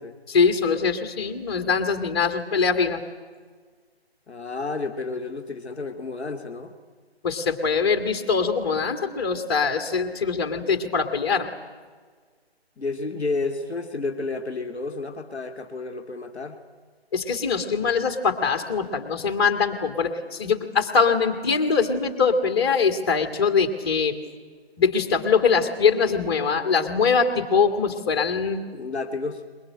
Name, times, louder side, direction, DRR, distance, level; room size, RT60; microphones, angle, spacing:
voice 1, 0.3-3.0 7.2-11.5 17.1-24.2 24.8-28.7, left 5 dB, 25° left, 6 dB, 1.9 m, -22 dB
voice 2, 4.3-6.7 12.8-16.6 28.7-29.4, left 3 dB, ahead, -15 dB, 0.8 m, -31 dB
22.0 x 21.5 x 8.8 m, 1.5 s
figure-of-eight pair, 160°, 32 cm